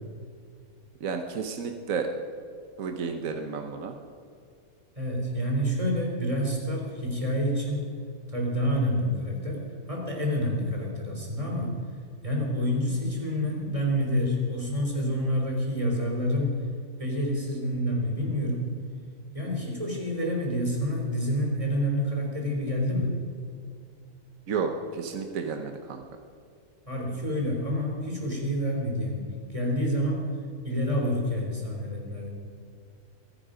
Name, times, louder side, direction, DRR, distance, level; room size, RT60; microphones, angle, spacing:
voice 1, 1.0-2.1 2.8-3.9 24.5-26.0, right 5 dB, 70° right, 5 dB, 1.4 m, -31 dB
voice 2, 4.9-7.8 8.3-9.6 9.9-11.7 12.2-16.5 17.0-18.7 19.3-23.1 26.9-30.3 30.6-32.3, equal, 25° right, -1 dB, 3.5 m, -28 dB
22.0 x 10.5 x 5.1 m, 2.3 s
omnidirectional pair, 1.5 m